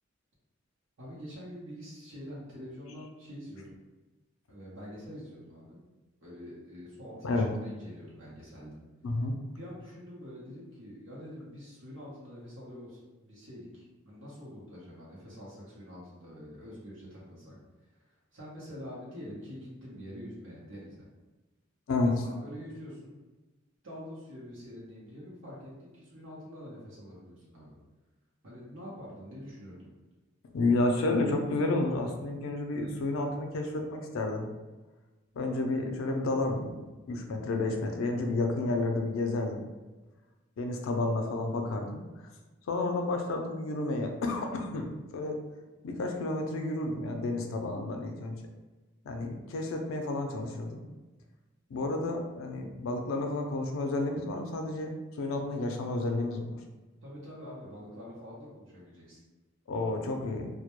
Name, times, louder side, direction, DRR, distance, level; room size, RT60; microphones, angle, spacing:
voice 1, 1.0-3.7 4.5-5.8 6.2-8.8 9.5-17.6 18.3-21.0 22.0-23.1 23.8-27.8 28.4-29.9 57.0-59.2, equal, 65° right, -7 dB, 0.7 m, -45 dB
voice 2, 7.2-7.6 9.0-9.4 21.9-22.1 30.5-34.5 35.3-36.8 37.1-39.6 40.6-42.0 42.7-45.4 45.8-48.4 49.0-50.8 51.7-56.6 59.7-60.5, left 2 dB, 80° left, 4 dB, 0.4 m, -31 dB
2.1 x 2.1 x 2.9 m, 1.2 s
head